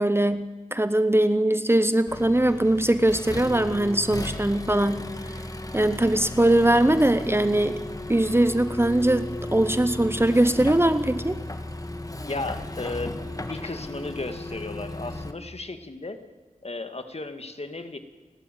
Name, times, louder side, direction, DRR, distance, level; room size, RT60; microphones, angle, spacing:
voice 1, 0.0-5.0 5.7-7.8 8.1-11.4, right 1 dB, 15° right, 12 dB, 0.8 m, -21 dB
Accelerating revving vroom, 2.1-15.3, left 1 dB, 25° left, 1.7 m, -35 dB
voice 2, 12.2-13.2 13.5-16.2 16.6-18.0, left 2 dB, 45° left, 8 dB, 1.9 m, -34 dB
29.5 x 12.0 x 9.1 m, 1.3 s
wide cardioid pair, 75°, 15 cm